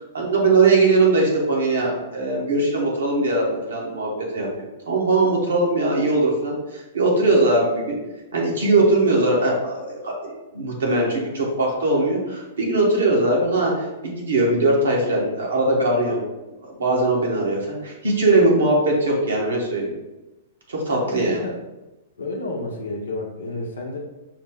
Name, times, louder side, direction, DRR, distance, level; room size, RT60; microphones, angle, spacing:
voice 1, 0.1-4.5 4.9-8.0 8.3-16.2 16.8-19.9 20.7-21.4, right 2 dB, 80° right, -2 dB, 1.3 m, -20 dB
voice 2, 21.0-21.6 22.2-24.0, left 2 dB, 80° left, 1 dB, 0.7 m, -31 dB
5.5 x 2.2 x 3.7 m, 1.0 s
hypercardioid pair, 115°, 0 cm